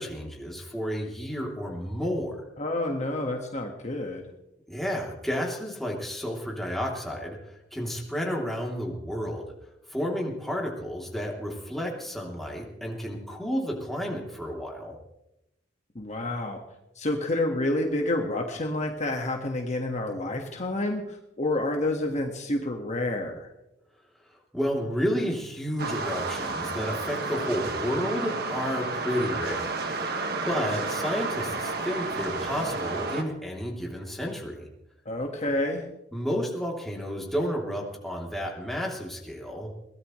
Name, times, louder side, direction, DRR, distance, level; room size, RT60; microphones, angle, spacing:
voice 1, 0.0-2.4 4.7-9.5 9.9-15.0 24.5-30.1 30.4-34.7 36.1-39.7, equal, ahead, -2 dB, 3.2 m, -31 dB
voice 2, 2.6-4.3 15.9-16.6 16.9-23.5 35.0-35.8, left 1 dB, 40° left, 2 dB, 1.7 m, -29 dB
sound 1, 25.8-33.2, right 3 dB, 55° right, 1.8 m, -31 dB
22.5 x 17.0 x 3.2 m, 0.90 s
head